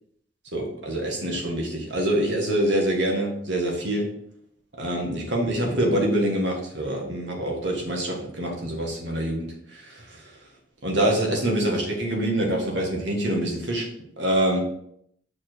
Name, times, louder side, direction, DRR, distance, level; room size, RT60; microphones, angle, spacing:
voice 1, 0.5-4.1 4.8-10.2 10.8-13.9 14.2-14.6, right 1 dB, 80° right, 0 dB, 1.7 m, -25 dB
5.8 x 4.5 x 4.5 m, 0.70 s
head